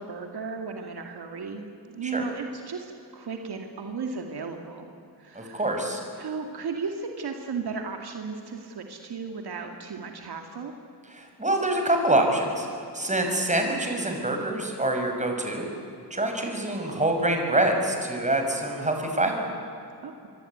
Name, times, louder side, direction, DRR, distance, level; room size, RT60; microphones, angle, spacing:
voice 1, 0.0-5.7 6.2-10.7 20.0-20.2, right 5 dB, 65° right, 4 dB, 2.6 m, -35 dB
voice 2, 5.3-6.0 11.1-12.7 12.9-15.7 16.1-19.5, right 1 dB, 15° right, 3 dB, 6.1 m, -25 dB
26.5 x 23.5 x 9.6 m, 2.6 s
cardioid pair, 100°, 41 cm